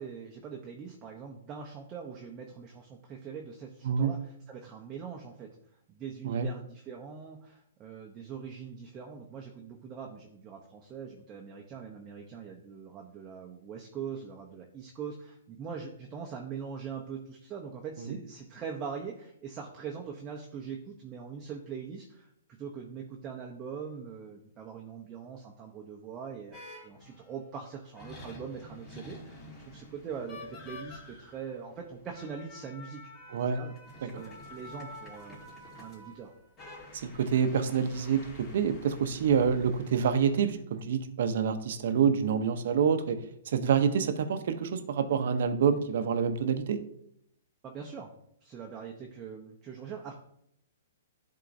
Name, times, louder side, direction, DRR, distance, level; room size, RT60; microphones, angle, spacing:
voice 1, 0.0-4.2 4.5-5.5 5.9-22.3 22.6-33.0 33.3-35.4 35.8-36.3 47.6-48.1 48.4-50.2, right 6 dB, 20° right, 0 dB, 0.7 m, -42 dB
sound 1, 26.5-27.3 27.9-40.5, left 1 dB, 20° left, 2.5 m, -48 dB
voice 2, 33.3-33.6 34.1-34.2 36.9-46.8, right 7 dB, 60° right, 9 dB, 0.7 m, -27 dB
11.0 x 3.8 x 2.6 m, 0.71 s
hypercardioid pair, 150°, 0 cm